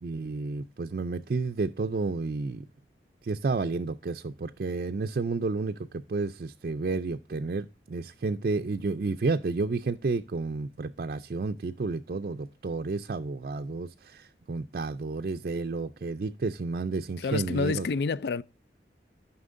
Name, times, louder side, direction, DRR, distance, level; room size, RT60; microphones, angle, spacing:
voice 1, 0.0-2.6 3.2-5.8 6.1-17.9, right 3 dB, 55° right, 0.4 m, -31 dB
voice 2, 17.2-18.4, left 4 dB, 65° left, 0.4 m, -28 dB
13.0 x 5.8 x 2.5 m
head